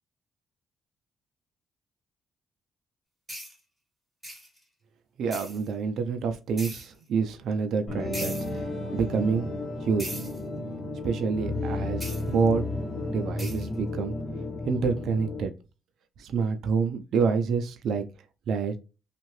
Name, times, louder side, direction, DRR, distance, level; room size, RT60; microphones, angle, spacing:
sound 1, 3.3-3.5 4.2-4.6 5.3-5.7 6.6-6.9 8.1-8.5 10.0-10.4 12.0-12.2 13.4-13.7, equal, ahead, 1.5 m, -39 dB
voice 1, 5.2-9.5 9.8-10.1 11.0-12.7 13.1-14.1 14.7-15.5 16.2-18.0 18.5-18.8, right 5 dB, 70° right, 0.5 m, -27 dB
sound 2, 7.9-15.5, left 2 dB, 35° left, 1.4 m, -33 dB
2.7 x 2.4 x 3.1 m
cardioid pair, 90°, 0 cm